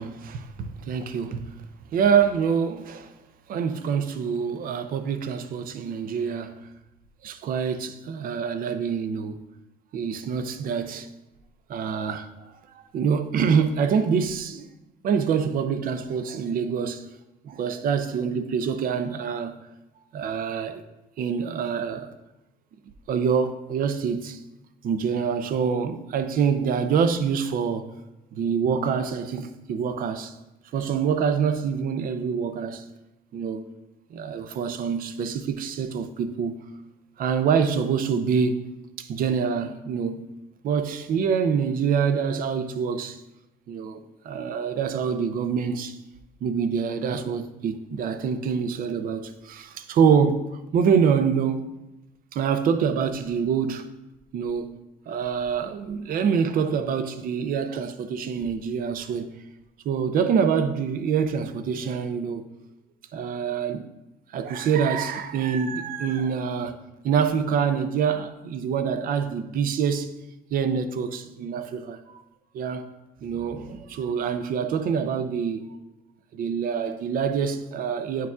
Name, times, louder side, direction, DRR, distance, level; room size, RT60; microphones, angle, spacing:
voice 1, 0.0-1.5 1.9-3.1 3.5-6.6 7.2-9.4 9.9-11.1 11.7-12.4 12.7-14.7 15.0-17.0 17.4-19.6 20.1-20.8 21.2-22.1 23.1-24.4 24.8-27.9 28.4-30.3 30.7-32.8 33.3-33.6 34.1-36.6 37.2-38.7 39.0-40.3 40.6-43.2 43.7-46.0 46.4-50.4 50.7-51.6 52.3-53.9 54.3-54.7 55.1-59.3 59.8-62.5 63.1-63.9 64.3-66.8 67.0-70.1 70.5-72.2 72.5-72.9 73.2-75.8 76.3-78.3, right 6 dB, 55° right, 0.5 m, -25 dB
9.1 x 4.7 x 2.4 m
cardioid pair, 110°, 17 cm